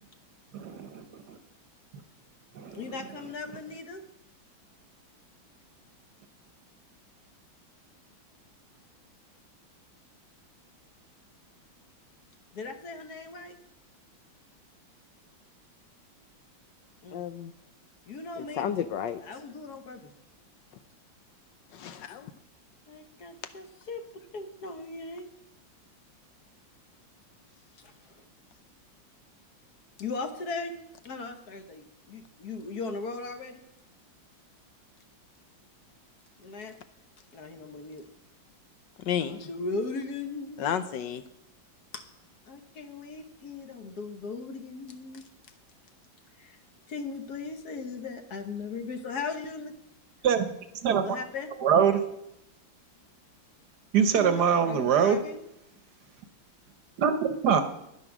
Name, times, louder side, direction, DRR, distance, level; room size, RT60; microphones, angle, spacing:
voice 1, 0.5-1.4 2.6-2.8 50.2-50.5 50.8-51.2 51.6-52.0 53.9-55.2 57.0-57.6, right 7 dB, 65° right, 9 dB, 1.3 m, -23 dB
voice 2, 2.7-4.0 12.5-13.6 17.0-17.2 18.1-18.7 19.2-20.1 22.9-25.3 27.8-28.2 30.0-30.7 31.0-33.6 36.4-36.7 37.3-38.0 39.2-40.7 41.9-42.0 42.5-45.2 46.4-46.6 46.9-49.7 51.0-51.5 54.1-55.4, left 4 dB, 55° left, 7 dB, 1.4 m, -38 dB
voice 3, 17.1-17.5 18.4-19.2 21.7-22.3 39.0-39.5 40.6-41.2, left 9 dB, 75° left, 11 dB, 1.2 m, -32 dB
10.5 x 9.8 x 6.0 m, 0.83 s
omnidirectional pair, 2.1 m